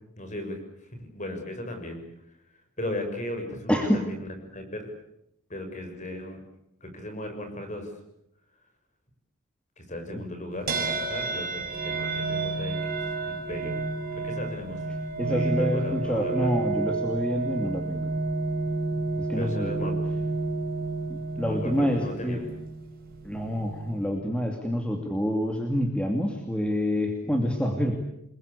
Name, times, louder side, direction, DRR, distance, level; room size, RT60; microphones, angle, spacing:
voice 1, 0.2-2.0 2.8-4.9 5.5-6.4 6.8-7.9 9.8-13.0 13.3-13.8 14.1-14.8 15.2-16.5 19.3-20.0 21.3-22.5, left 1 dB, 35° left, 6 dB, 6.4 m, -36 dB
sound 1, 10.7-24.2, right 3 dB, 40° right, 6.5 m, -30 dB
voice 2, 15.2-18.1 19.2-19.9 21.1-22.4 23.2-27.9, equal, 5° left, 3 dB, 2.6 m, -27 dB
28.5 x 22.0 x 8.4 m, 0.79 s
head